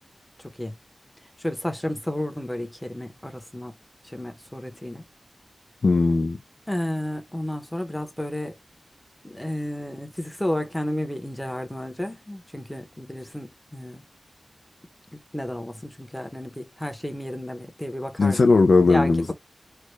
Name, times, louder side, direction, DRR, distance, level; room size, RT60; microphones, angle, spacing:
voice 1, 0.4-0.8 1.4-3.7 4.0-5.0 6.7-8.6 9.2-14.0 15.1-18.5 18.9-19.3, left 1 dB, 10° left, 0.7 m, -32 dB
voice 2, 5.8-6.4 18.2-19.3, left 3 dB, 70° left, 0.3 m, -18 dB
3.3 x 2.2 x 3.1 m
wide cardioid pair, 95°, 0 cm